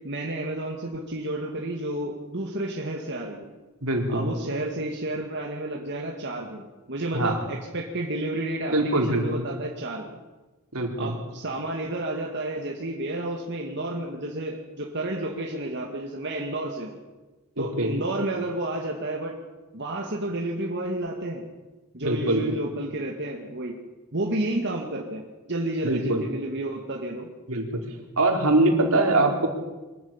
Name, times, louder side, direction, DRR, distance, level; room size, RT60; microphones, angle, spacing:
voice 1, 0.0-3.5 4.1-10.2 11.0-17.0 17.6-19.3 19.7-21.4 21.9-23.8 24.1-25.2 25.5-27.3, right 1 dB, 50° right, 0 dB, 2.2 m, -31 dB
voice 2, 3.8-4.3 7.1-7.4 8.7-9.4 10.7-11.1 17.6-17.9 22.0-22.5 25.8-26.2 27.5-27.8 28.2-29.5, right 2 dB, 75° right, 3 dB, 3.9 m, -23 dB
23.5 x 14.0 x 8.9 m, 1.2 s
head